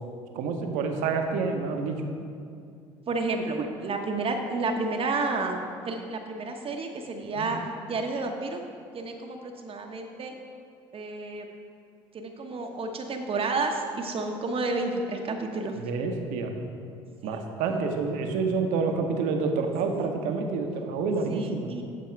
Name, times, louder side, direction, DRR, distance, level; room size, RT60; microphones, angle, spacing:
voice 1, 0.3-2.0 3.6-3.7 7.3-7.5 15.7-16.5 17.2-21.7, right 4 dB, 70° right, 4 dB, 1.0 m, -28 dB
voice 2, 3.1-5.6 5.8-7.6 7.9-8.6 8.9-10.3 10.9-11.5 12.1-15.8 17.2-17.5 20.2-20.6 21.3-21.8, right 3 dB, 40° right, 3 dB, 0.9 m, -31 dB
13.0 x 4.7 x 4.6 m, 2.4 s
hypercardioid pair, 60°, 14 cm